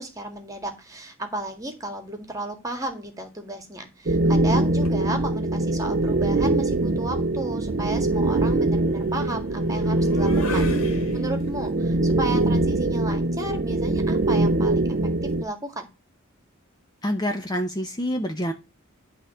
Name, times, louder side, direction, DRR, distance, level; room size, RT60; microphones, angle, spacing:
voice 1, 0.0-15.0 15.2-15.9, right 1 dB, 15° right, 6 dB, 1.8 m, -33 dB
sound 1, 4.1-15.4, right 2 dB, 45° right, 0.6 m, -23 dB
sound 2, 4.8-5.0 6.4-11.7, left 2 dB, 80° left, 2.1 m, -37 dB
voice 2, 17.0-18.5, equal, 20° left, 4 dB, 0.7 m, -27 dB
11.0 x 3.7 x 6.7 m, 0.26 s
head